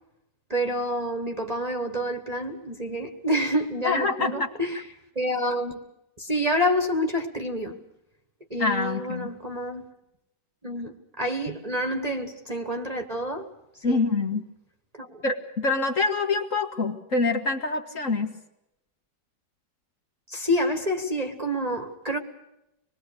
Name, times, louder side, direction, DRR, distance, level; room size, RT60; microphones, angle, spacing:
voice 1, 0.5-4.8 5.1-5.8 6.2-7.8 8.5-9.9 10.6-13.5 13.9-14.0 14.9-15.2 20.3-22.2, equal, 25° right, 1.4 m, -28 dB
voice 2, 3.8-4.5 8.6-9.3 13.8-14.4 15.2-18.3, left 3 dB, 45° left, 1.9 m, -25 dB
25.5 x 21.0 x 6.7 m
omnidirectional pair, 1.9 m